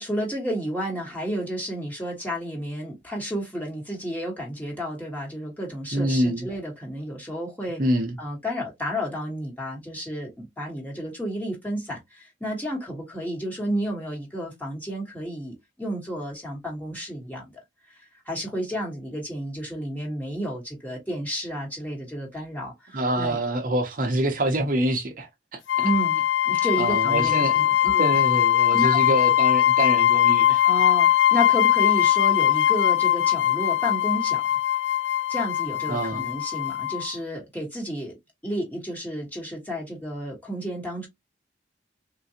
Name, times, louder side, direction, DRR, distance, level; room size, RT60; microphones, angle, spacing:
voice 1, 0.0-7.8 8.2-17.5 17.9-18.0 18.2-23.4 25.8-26.2 26.4-28.1 28.7-29.0 30.6-34.5 35.3-38.2 38.4-41.1, equal, 10° left, 1.3 m, -31 dB
voice 2, 5.9-6.5 7.8-8.2 22.9-25.6 26.5-30.6 35.9-36.3, right 1 dB, 45° right, 0.6 m, -26 dB
sound 1, 25.7-37.1, left 12 dB, 75° left, 0.4 m, -21 dB
3.7 x 2.5 x 2.8 m
head